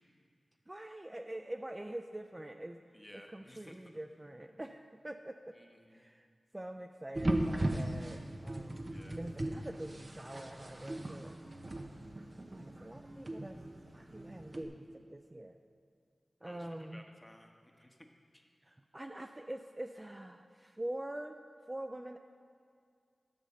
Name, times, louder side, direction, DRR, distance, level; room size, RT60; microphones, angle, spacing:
voice 1, 0.7-2.8 3.1-5.6 5.9-6.3 6.5-8.9 9.2-11.4 12.6-13.6 13.9-15.6 16.4-17.0 18.6-21.4 21.7-22.2, right 1 dB, 25° right, 6 dB, 0.4 m, -45 dB
voice 2, 2.9-3.7 5.5-6.1 8.8-9.2 16.4-17.5 17.8-18.1 18.3-18.5, left 1 dB, 15° left, 3 dB, 1.2 m, -56 dB
sound 1, 7.1-14.6, right 1 dB, 40° right, 0.9 m, -38 dB
11.0 x 5.6 x 6.7 m, 2.2 s
cardioid pair, 40°, 0 cm